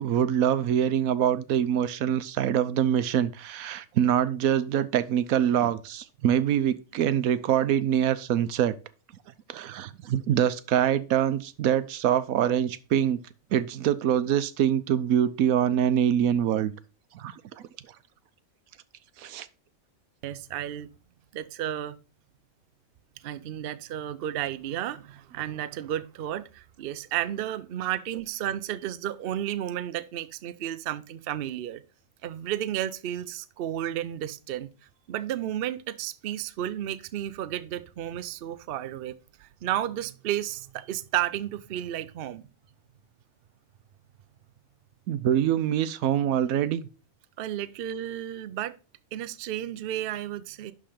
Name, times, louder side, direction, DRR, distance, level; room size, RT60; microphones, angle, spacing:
voice 1, 0.0-8.7 9.5-13.2 13.5-16.7 17.1-17.3 19.2-19.5 45.1-46.9, right 10 dB, 80° right, 1.1 m, -24 dB
voice 2, 20.2-20.9 21.3-22.0 23.2-31.8 32.2-34.7 35.1-39.1 39.4-42.4 47.4-48.7 49.1-50.7, right 12 dB, 60° right, 0.6 m, -32 dB
11.5 x 3.9 x 5.0 m
omnidirectional pair, 1.5 m